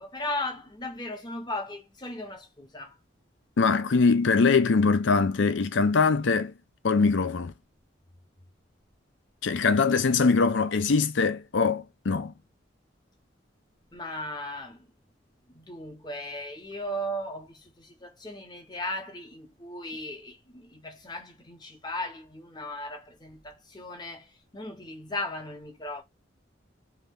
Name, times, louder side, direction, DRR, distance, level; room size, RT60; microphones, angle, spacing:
voice 1, 0.0-3.0 13.9-14.9 15.5-26.0, left 1 dB, 20° left, 0.8 m, -37 dB
voice 2, 3.6-6.5 6.8-7.5 9.4-12.3, left 4 dB, 75° left, 0.5 m, -22 dB
2.9 x 2.5 x 3.4 m
head